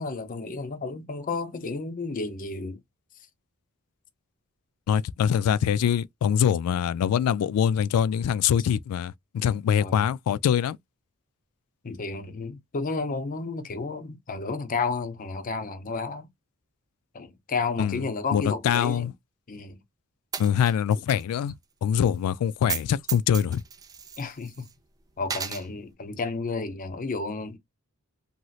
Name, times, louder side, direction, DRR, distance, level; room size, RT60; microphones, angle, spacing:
voice 1, 0.0-2.8 9.8-10.1 11.8-16.3 17.1-19.1 19.5-19.8 24.2-24.7 25.2-27.6, left 4 dB, 40° left, 0.6 m, -32 dB
voice 2, 4.9-10.8 17.8-18.0 18.3-19.1 20.4-21.5 21.8-23.6, left 8 dB, 85° left, 0.3 m, -24 dB
Coin (dropping), 20.3-21.2 21.5-21.6 22.6-22.8 23.1-24.7 25.2-25.7, right 7 dB, 15° right, 0.3 m, -34 dB
3.0 x 2.7 x 2.3 m
head